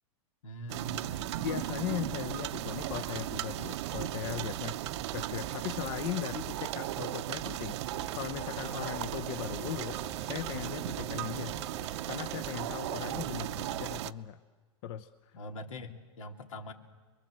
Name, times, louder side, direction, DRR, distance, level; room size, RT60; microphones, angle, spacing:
voice 1, 0.4-1.5 15.3-16.7, equal, 80° left, 5 dB, 2.8 m, -43 dB
sound 1, 0.7-14.1, right 14 dB, 60° right, 0.8 m, -36 dB
voice 2, 1.4-4.8 5.1-11.6 12.0-14.4 14.8-15.4, left 11 dB, 55° left, 8 dB, 1.0 m, -38 dB
sound 2, 2.3-12.4, left 5 dB, 25° left, 1.9 m, -53 dB
sound 3, 9.2-13.0, right 2 dB, 5° right, 1.1 m, -51 dB
28.5 x 22.5 x 7.8 m, 1.4 s
hypercardioid pair, 130°, 16 cm